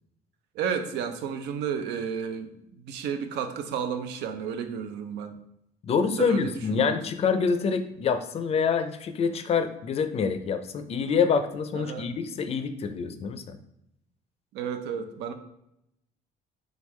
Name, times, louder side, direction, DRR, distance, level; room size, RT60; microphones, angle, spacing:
voice 1, 0.5-5.4 6.2-7.0 11.7-12.1 14.5-15.3, right 7 dB, 90° right, 8 dB, 0.5 m, -32 dB
voice 2, 5.8-13.6, left 6 dB, 35° left, 9 dB, 0.4 m, -26 dB
3.7 x 3.5 x 3.1 m, 0.80 s
cardioid pair, 110°, 17 cm